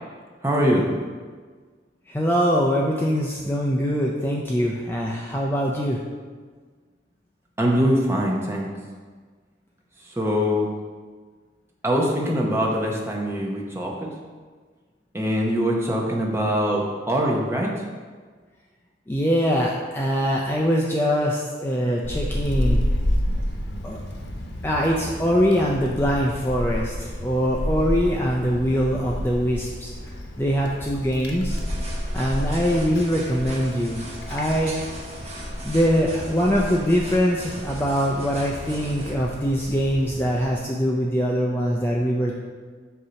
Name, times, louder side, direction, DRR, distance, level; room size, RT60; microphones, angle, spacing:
voice 1, 0.4-0.9 7.6-8.7 10.0-10.7 11.8-14.1 15.1-17.8, equal, 15° right, -2 dB, 0.8 m, -23 dB
voice 2, 2.1-6.0 19.1-22.8 23.8-24.0 24.6-29.9 30.4-31.6 32.1-34.0 34.3-34.7 35.6-42.4, equal, 10° left, -2 dB, 0.4 m, -23 dB
Wind, 22.0-40.5, equal, 80° left, 1.0 m, -30 dB
sound 1, 31.5-39.1, right 1 dB, 35° right, 1.2 m, -39 dB
8.0 x 2.8 x 5.7 m, 1.5 s
head